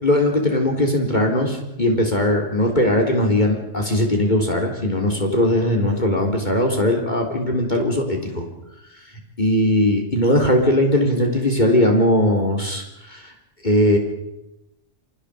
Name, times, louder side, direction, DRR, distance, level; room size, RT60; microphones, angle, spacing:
voice 1, 0.0-8.5 9.4-13.2 13.6-14.0, left 1 dB, 35° left, 2 dB, 3.8 m, -19 dB
29.5 x 24.5 x 5.1 m, 0.89 s
omnidirectional pair, 1.3 m